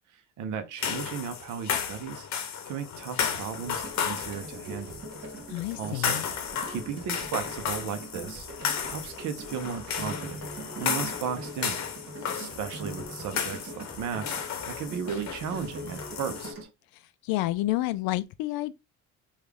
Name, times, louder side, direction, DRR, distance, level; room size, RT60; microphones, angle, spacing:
voice 1, 0.1-5.0 5.8-6.3 6.7-11.8 12.3-16.7, right 7 dB, 55° right, 0.7 m, -36 dB
sound 1, 0.8-16.5, left 7 dB, 50° left, 0.8 m, -34 dB
sound 2, 3.6-16.6, right 1 dB, 40° right, 1.3 m, -42 dB
voice 2, 5.5-6.3 17.2-18.7, left 17 dB, 75° left, 0.5 m, -29 dB
3.2 x 2.4 x 3.4 m
supercardioid pair, 85°, 36 cm